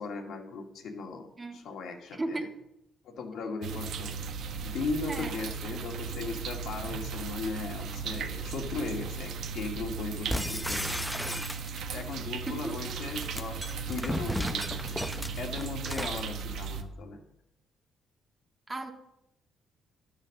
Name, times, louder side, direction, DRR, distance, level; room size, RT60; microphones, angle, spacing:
voice 1, 0.0-2.5 3.0-4.1 4.6-11.4 11.9-13.6 13.9-15.0 15.4-17.2, left 4 dB, 75° left, 2 dB, 2.2 m, -37 dB
voice 2, 2.1-2.5 5.1-5.3 12.5-12.8 16.0-16.1 18.7-18.9, right 2 dB, 25° right, 4 dB, 1.7 m, -35 dB
sound 1, 3.6-16.8, right 5 dB, 75° right, 1.1 m, -37 dB
sound 2, 10.3-12.0 13.0-16.3, equal, ahead, 0.7 m, -35 dB
12.0 x 7.7 x 6.6 m, 0.82 s
cardioid pair, 90°, 0 cm